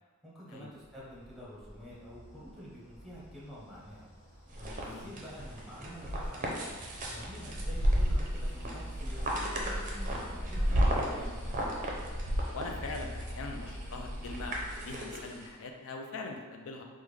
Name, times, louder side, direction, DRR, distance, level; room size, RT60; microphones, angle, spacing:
voice 1, 0.2-4.1 4.5-11.5, equal, ahead, -7 dB, 0.8 m, -48 dB
sound 1, 1.0-15.5, equal, 40° left, 1.3 m, -45 dB
sound 2, 4.5-15.5, equal, 35° right, 0.5 m, -32 dB
voice 2, 4.8-5.1 12.5-16.8, left 3 dB, 65° left, 3 dB, 0.4 m, -42 dB
3.5 x 2.1 x 3.2 m, 1.4 s
head